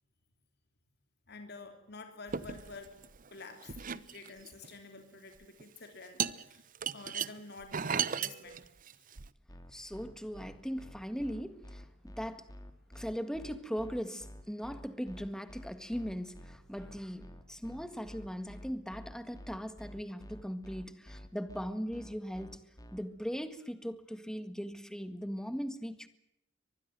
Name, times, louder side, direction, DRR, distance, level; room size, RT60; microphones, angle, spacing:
voice 1, 1.3-8.7 8.9-9.0, left 3 dB, 55° left, 3.2 m, -49 dB
sound 1, 2.3-3.3 3.6-4.7 5.4-5.6 6.2-9.3, right 7 dB, 45° right, 0.8 m, -36 dB
sound 2, 9.5-23.0, equal, 20° left, 2.7 m, -49 dB
voice 2, 9.7-12.5 13.0-22.6 22.9-26.1, equal, 5° left, 1.8 m, -39 dB
24.5 x 20.0 x 7.6 m
head